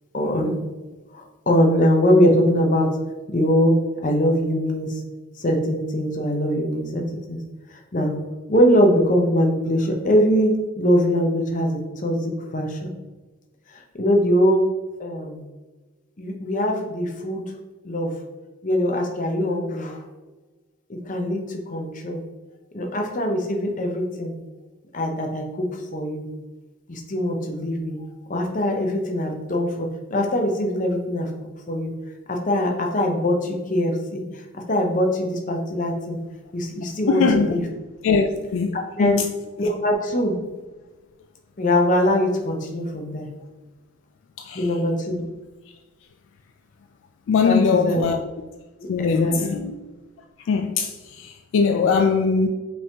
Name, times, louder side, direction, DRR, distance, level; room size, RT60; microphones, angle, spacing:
voice 1, 0.1-0.6 1.1-2.9 3.3-3.8 4.0-5.0 5.4-7.4 7.7-8.2 8.5-12.9 13.7-14.7 15.0-15.4 16.2-17.4 17.8-18.2 18.6-20.0 20.9-22.2 22.7-24.4 24.9-26.3 26.9-28.0 28.3-31.3 31.7-31.9 32.3-34.2 34.5-36.2 36.5-37.6 38.7-39.2 39.6-40.4 41.6-43.3 44.5-45.3 47.4-48.0 48.8-49.6, equal, 35° left, 0.6 m, -22 dB
voice 2, 37.1-37.6 38.0-39.3 44.4-44.7 47.3-48.2 48.9-49.7 50.4-52.5, left 5 dB, 70° left, 0.3 m, -21 dB
5.3 x 3.6 x 2.8 m
head